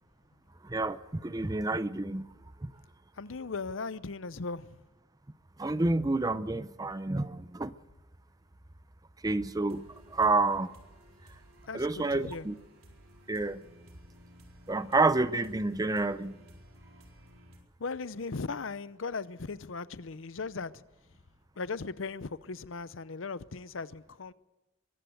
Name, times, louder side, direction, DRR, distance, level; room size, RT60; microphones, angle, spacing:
voice 1, 0.7-2.3 5.6-7.7 9.2-9.9 10.1-10.7 11.7-12.6 13.3-13.6 14.7-16.4, right 3 dB, 20° right, 0.6 m, -29 dB
voice 2, 3.2-4.7 11.7-12.5 17.8-20.8 21.6-24.3, left 4 dB, 70° left, 0.7 m, -38 dB
sound 1, 9.7-17.6, equal, 80° right, 4.5 m, -55 dB
22.5 x 15.0 x 7.8 m
head